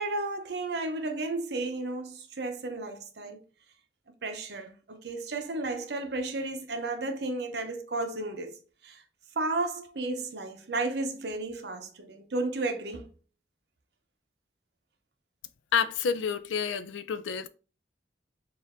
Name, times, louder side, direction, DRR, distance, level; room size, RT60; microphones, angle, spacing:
voice 1, 0.0-3.4 4.2-8.6 8.8-9.0 9.4-13.1, right 2 dB, 60° right, 0.6 m, -33 dB
voice 2, 15.7-17.5, left 6 dB, 90° left, 0.4 m, -29 dB
4.3 x 2.5 x 3.5 m
head